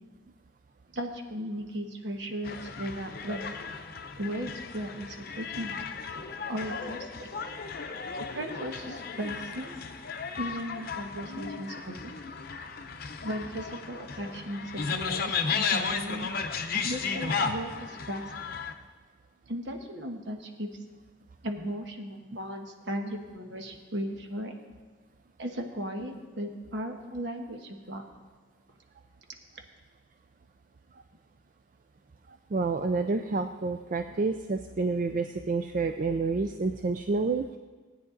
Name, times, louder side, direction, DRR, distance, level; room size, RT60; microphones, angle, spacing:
voice 1, 0.9-3.5 4.2-5.7 6.5-7.3 8.1-9.7 10.4-12.0 13.2-16.3 16.8-18.3 19.5-20.7 21.4-24.5 25.4-28.0, equal, 60° right, 3 dB, 1.3 m, -36 dB
sound 1, 2.4-18.7, left 5 dB, 50° left, 0.7 m, -35 dB
voice 2, 32.5-37.5, right 3 dB, 45° right, 7 dB, 0.4 m, -29 dB
16.5 x 9.3 x 3.9 m, 1.4 s
head